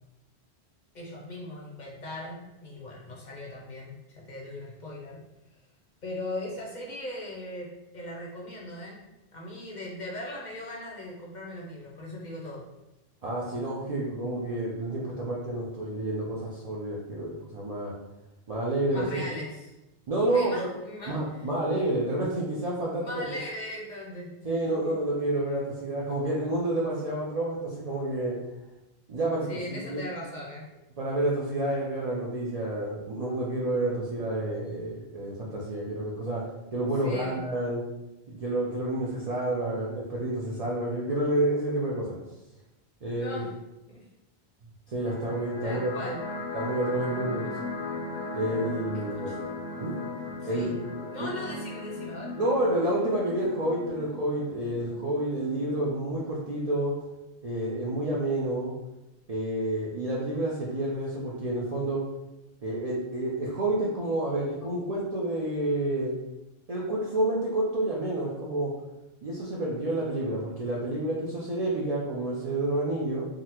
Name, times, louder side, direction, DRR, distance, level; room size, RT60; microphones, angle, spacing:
voice 1, 0.9-5.2 6.0-9.0 9.3-12.6 18.9-19.7 20.3-21.5 23.0-25.0 29.5-30.6 37.0-37.4 43.0-43.5 43.9-44.0 45.6-46.3 47.4-47.5 48.9-49.4 50.4-50.8 51.1-52.4, left 1 dB, 50° left, -3 dB, 0.6 m, -39 dB
voice 2, 13.2-17.9 18.5-19.2 20.1-20.7 21.1-23.4 24.4-28.4 29.1-30.1 31.0-36.4 36.7-37.8 38.3-42.2 43.0-43.4 44.9-45.9 46.5-47.4 48.3-49.3 49.8-50.0 50.4-50.8 51.2-51.3 52.4-56.9 57.4-58.7 59.3-62.0 62.6-66.1 66.7-68.7 69.2-73.3, right 1 dB, 55° right, -5 dB, 0.4 m, -29 dB
sound 1, 44.9-55.9, left 3 dB, 80° left, 0.8 m, -37 dB
3.6 x 2.0 x 2.8 m, 0.97 s
omnidirectional pair, 1.1 m